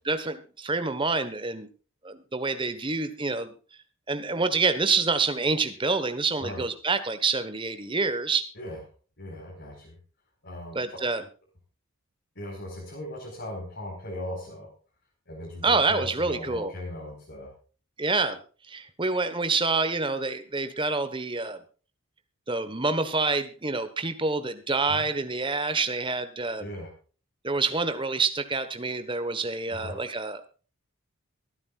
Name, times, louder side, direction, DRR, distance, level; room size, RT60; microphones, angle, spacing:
voice 1, 0.0-1.7 2.0-3.5 4.1-8.4 10.7-11.2 15.6-16.7 18.0-18.4 18.7-21.6 22.5-26.7 27.4-30.5, right 3 dB, 20° right, 10 dB, 1.3 m, -27 dB
voice 2, 9.2-10.0 10.4-11.0 12.3-14.7 15.3-17.5 24.9-25.1 26.6-26.9 29.7-30.0, left 1 dB, 50° left, -4 dB, 4.8 m, -38 dB
24.0 x 9.7 x 2.5 m, 0.38 s
head